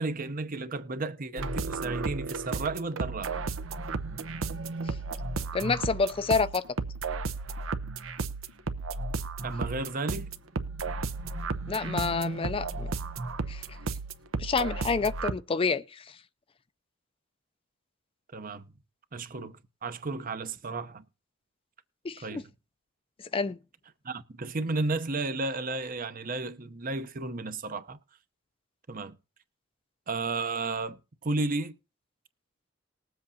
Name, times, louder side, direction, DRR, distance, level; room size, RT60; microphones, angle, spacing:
voice 1, 0.0-3.4 9.4-10.3 18.3-18.7 19.1-21.0 22.2-22.4 24.0-28.0 28.9-29.1 30.1-31.8, right 3 dB, 45° right, 0.8 m, -33 dB
sound 1, 1.4-15.3, right 3 dB, 80° right, 0.8 m, -34 dB
voice 2, 5.5-6.6 11.7-12.9 13.5-13.6 14.4-16.0 22.0-22.4 23.3-23.6, left 4 dB, 25° left, 0.4 m, -28 dB
20.0 x 7.8 x 2.8 m
head